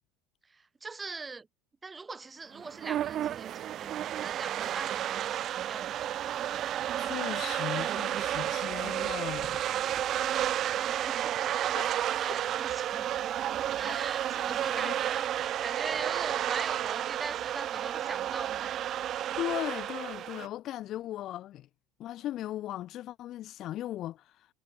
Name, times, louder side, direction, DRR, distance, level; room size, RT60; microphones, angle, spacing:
voice 1, 0.4-1.5 1.8-6.3 10.7-11.5 12.1-13.1 13.7-19.0, right 4 dB, 15° right, 2.9 m, -42 dB
sound 1, 2.5-20.5, right 11 dB, 40° right, 1.0 m, -32 dB
voice 2, 7.0-9.6 11.8-12.4 13.9-14.0 14.7-14.9 19.4-21.7 22.0-24.5, left 13 dB, 45° left, 0.9 m, -38 dB
supercardioid pair, 135°, 0 cm